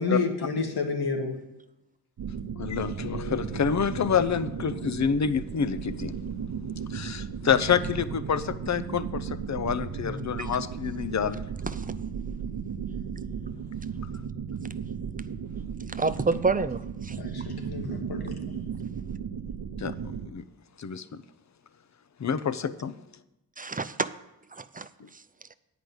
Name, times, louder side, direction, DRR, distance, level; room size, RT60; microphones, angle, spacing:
voice 1, 0.0-1.4 10.0-10.3 17.2-18.6, left 4 dB, 85° left, 2 dB, 1.7 m, -30 dB
sound 1, 2.2-20.3, right 7 dB, 80° right, 0.7 m, -35 dB
voice 2, 2.6-6.2 6.9-11.4 19.8-19.9 20.3-20.4 20.8-21.2 22.2-22.9 25.0-25.1, left 7 dB, 50° left, 13 dB, 0.6 m, -27 dB
voice 3, 16.0-17.2 23.6-24.1 24.6-24.9, right 4 dB, 25° right, 13 dB, 0.4 m, -27 dB
9.7 x 5.1 x 7.9 m, 0.92 s
wide cardioid pair, 95°, 37 cm